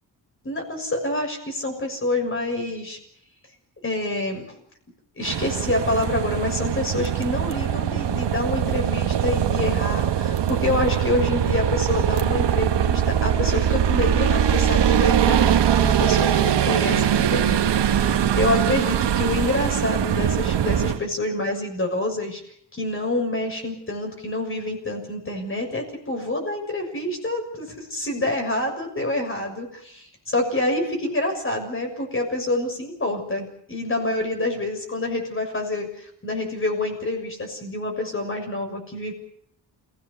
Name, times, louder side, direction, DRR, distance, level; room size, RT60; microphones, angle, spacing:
voice 1, 0.4-3.0 3.8-4.5 5.2-17.6 17.9-22.4 22.7-39.1, left 2 dB, 30° left, 3 dB, 6.7 m, -27 dB
sound 1, 5.2-21.0, right 9 dB, 75° right, 1.6 m, -22 dB
29.0 x 17.0 x 7.0 m, 0.68 s
wide cardioid pair, 135°, 42 cm